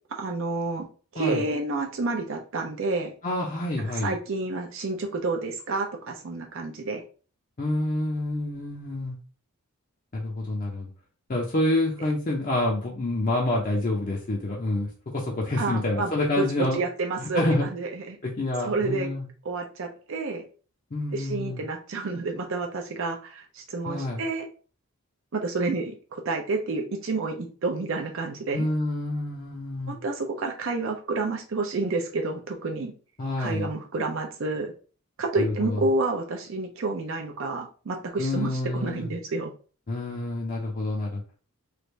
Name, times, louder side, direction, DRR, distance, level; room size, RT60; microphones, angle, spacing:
voice 1, 0.1-0.9 1.1-3.1 4.0-7.0 15.6-16.1 16.4-18.2 18.6-19.1 19.4-20.4 21.1-24.4 25.3-28.7 29.9-32.9 33.4-34.7 35.2-39.5, right 3 dB, 60° right, 2 dB, 0.5 m, -29 dB
voice 2, 3.2-4.1 7.6-9.2 10.1-10.9 11.3-16.8 17.2-17.7 18.2-19.2 20.9-21.6 23.8-24.2 28.5-29.9 33.2-33.7 35.4-35.8 38.2-39.1 39.9-41.2, left 2 dB, 35° left, -2 dB, 0.6 m, -28 dB
3.3 x 2.5 x 3.1 m, 0.39 s
head